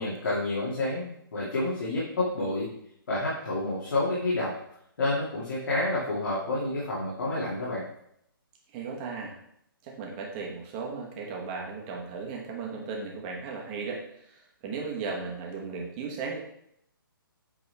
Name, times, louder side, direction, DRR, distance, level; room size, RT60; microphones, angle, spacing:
voice 1, 0.0-2.7 3.1-4.5 5.0-7.8, left 2 dB, 65° left, -7 dB, 2.3 m, -29 dB
voice 2, 8.7-9.4 9.8-16.4, right 4 dB, 20° right, -1 dB, 1.1 m, -36 dB
8.2 x 3.5 x 3.4 m, 0.74 s
hypercardioid pair, 160°, 12 cm